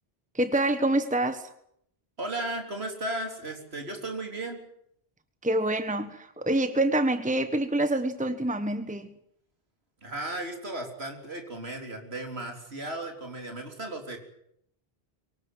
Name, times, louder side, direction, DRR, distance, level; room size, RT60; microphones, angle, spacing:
voice 1, 0.3-1.5 5.4-9.1, right 1 dB, 10° right, 10 dB, 1.3 m, -26 dB
voice 2, 2.2-4.6 10.0-14.2, right 2 dB, 90° right, 3 dB, 4.1 m, -35 dB
23.5 x 19.0 x 9.5 m, 0.72 s
omnidirectional pair, 1.0 m